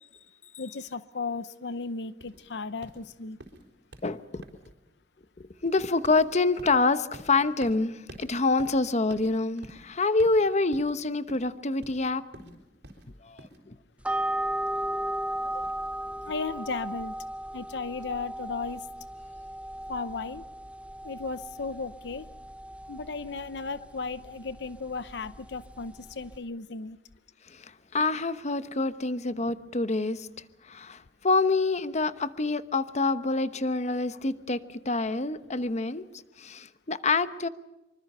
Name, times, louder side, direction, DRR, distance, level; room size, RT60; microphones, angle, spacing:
voice 1, 0.6-3.4 16.2-17.2 17.5-18.9 19.9-20.4 21.0-22.3 22.9-27.0, left 4 dB, 80° left, 14 dB, 0.7 m, -35 dB
sound 1, 2.2-13.6, right 1 dB, 85° right, 4.5 m, -50 dB
voice 2, 4.0-4.4 5.4-12.6 13.2-13.8 15.5-15.7 27.5-30.3 30.6-34.6 34.8-36.0 36.4-37.5, left 3 dB, 40° left, 13 dB, 1.0 m, -27 dB
sound 2, 14.0-26.4, right 1 dB, 10° right, 0.9 m, -36 dB
25.5 x 24.5 x 5.6 m, 0.99 s
head